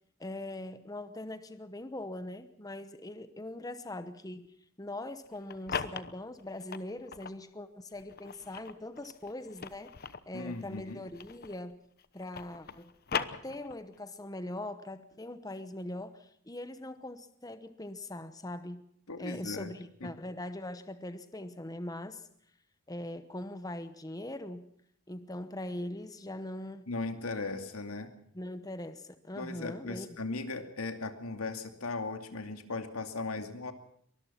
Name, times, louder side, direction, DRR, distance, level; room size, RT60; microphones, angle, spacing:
voice 1, 0.2-4.5 4.8-10.0 10.3-11.8 12.1-18.8 19.2-22.3 22.9-24.7 25.1-26.9 28.3-30.1, left 1 dB, 15° left, 11 dB, 0.9 m, -41 dB
sound 1, 5.3-7.4 8.0-11.7 12.0-14.0, left 6 dB, 45° left, 0.9 m, -40 dB
voice 2, 10.3-11.0 19.1-19.7 20.0-20.1 26.9-28.1 29.4-33.7, left 3 dB, 85° left, 7 dB, 2.5 m, -37 dB
23.5 x 20.0 x 5.7 m, 0.66 s
head